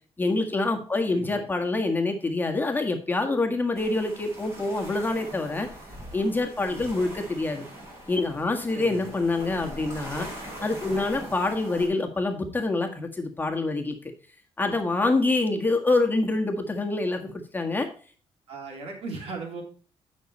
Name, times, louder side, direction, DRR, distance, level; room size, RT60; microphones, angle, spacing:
voice 1, 0.2-5.7 6.1-7.6 8.1-10.3 10.6-14.1 14.6-17.9, left 2 dB, 20° left, 3 dB, 1.6 m, -26 dB
voice 2, 1.1-1.5 6.7-6.9 8.7-9.2 18.5-19.6, right 3 dB, 70° right, 1 dB, 3.3 m, -38 dB
sound 1, 3.7-11.9, equal, 25° right, 4.9 m, -41 dB
9.2 x 6.4 x 4.3 m, 0.40 s
cardioid pair, 100°, 11 cm